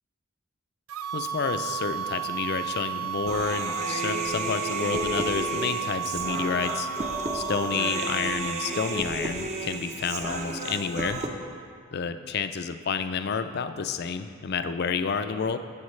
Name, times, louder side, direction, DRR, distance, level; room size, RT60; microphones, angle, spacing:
sound 1, 0.9-9.0, right 8 dB, 90° right, 0.4 m, -33 dB
voice 1, 1.1-6.9 7.3-11.2 11.9-15.6, left 6 dB, 50° left, 9 dB, 0.4 m, -30 dB
Human voice, 3.3-11.3, right 2 dB, 35° right, 0.7 m, -32 dB
15.5 x 7.1 x 3.2 m, 2.1 s
head